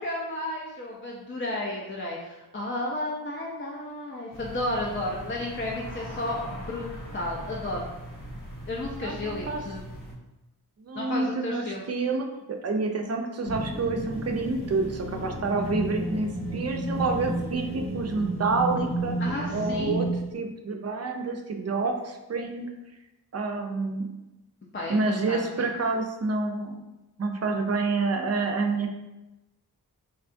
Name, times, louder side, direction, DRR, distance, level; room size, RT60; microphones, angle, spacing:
voice 1, 0.0-7.9 8.7-9.8 10.9-11.8 19.2-20.0 24.7-25.6, left 1 dB, 30° left, -3 dB, 0.5 m, -33 dB
sound 1, 4.3-10.1, equal, 55° left, 0.9 m, -40 dB
voice 2, 9.0-9.6 10.8-19.1 19.5-20.1 20.3-22.7 23.3-24.2 24.9-26.8 27.2-28.9, right 3 dB, 40° right, 3 dB, 0.4 m, -28 dB
sound 2, 13.5-20.2, right 1 dB, 75° left, 1.4 m, -32 dB
3.7 x 2.3 x 2.5 m, 1.0 s
wide cardioid pair, 50°, 38 cm